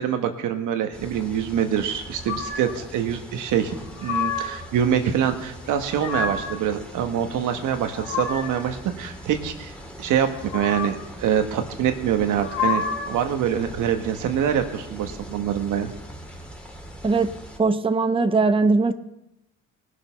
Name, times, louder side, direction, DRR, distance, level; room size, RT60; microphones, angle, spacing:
voice 1, 0.0-9.7 10.0-10.3 10.5-15.9, right 9 dB, 85° right, 6 dB, 1.4 m, -25 dB
sound 1, 0.9-17.6, equal, 5° left, 2.5 m, -41 dB
sound 2, 2.2-2.8 3.7-4.7 5.6-6.6 7.6-8.7 10.2-11.1 12.2-13.3, left 5 dB, 65° left, 2.4 m, -30 dB
voice 2, 17.6-18.9, right 3 dB, 20° right, 9 dB, 0.8 m, -20 dB
18.5 x 6.6 x 5.9 m, 0.88 s
cardioid pair, 90°, 30 cm